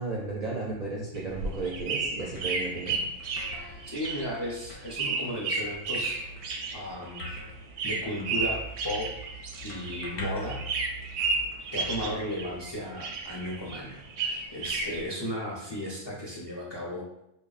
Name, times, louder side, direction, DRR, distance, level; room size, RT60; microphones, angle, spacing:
voice 1, 0.0-3.0, right 3 dB, 50° right, -4 dB, 0.5 m, -34 dB
sound 1, 1.1-10.2 10.5-12.7 13.0-15.0, right 4 dB, 90° right, 0.9 m, -33 dB
sound 2, 1.5-13.0, equal, 60° left, 0.7 m, -44 dB
voice 2, 3.8-6.2 6.7-7.4 7.8-9.3 9.6-10.6 11.7-17.0, equal, 30° left, -4 dB, 0.5 m, -35 dB
3.3 x 2.2 x 3.9 m, 0.82 s
omnidirectional pair, 1.2 m